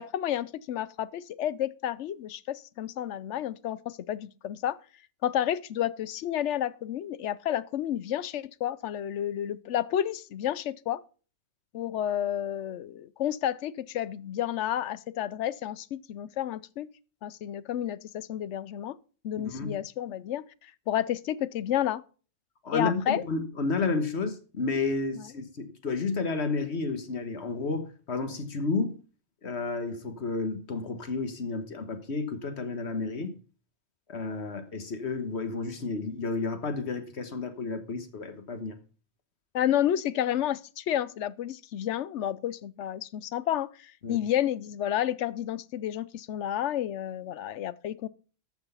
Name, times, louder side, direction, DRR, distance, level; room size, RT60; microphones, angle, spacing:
voice 1, 0.0-4.8 5.2-11.0 11.7-16.9 17.2-19.0 19.2-22.0 22.7-23.2 25.1-25.3 39.5-48.1, left 11 dB, 85° left, 1.0 m, -31 dB
voice 2, 19.4-19.8 22.6-29.0 29.4-33.3 34.1-38.8 44.0-44.2, left 3 dB, 70° left, 1.6 m, -31 dB
13.5 x 6.0 x 5.6 m
omnidirectional pair, 1.2 m